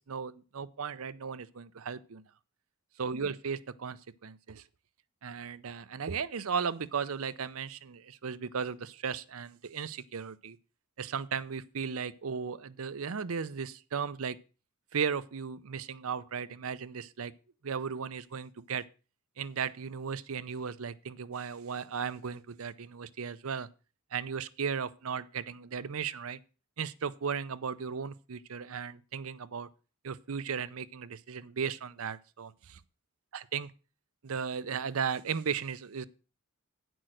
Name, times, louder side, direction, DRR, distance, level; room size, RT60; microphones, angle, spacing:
voice 1, 0.1-2.2 3.0-4.6 5.2-10.6 11.0-14.4 14.9-17.3 17.6-18.8 19.4-23.7 24.1-26.4 26.8-29.7 30.0-32.8 33.3-33.7 34.2-36.1, right 6 dB, 75° right, 0.6 m, -36 dB
9.0 x 6.3 x 6.2 m
head